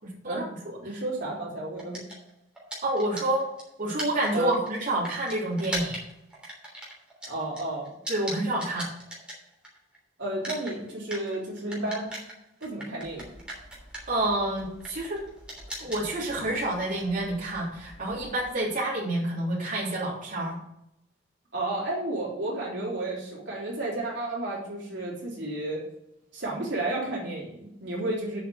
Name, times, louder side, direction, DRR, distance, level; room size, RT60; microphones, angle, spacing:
voice 1, 0.0-1.0 2.8-3.5 3.8-6.0 8.1-8.9 14.1-15.2 15.8-20.6, right 1 dB, 45° right, -7 dB, 3.1 m, -28 dB
voice 2, 0.8-2.0 4.3-4.6 7.3-7.9 10.2-12.1 12.6-13.3 21.5-25.8 26.3-28.4, right 2 dB, 65° right, -4 dB, 3.5 m, -32 dB
sound 1, 1.8-10.0 10.2-18.5, equal, 5° right, 3.2 m, -40 dB
7.7 x 5.9 x 7.6 m, 0.83 s
head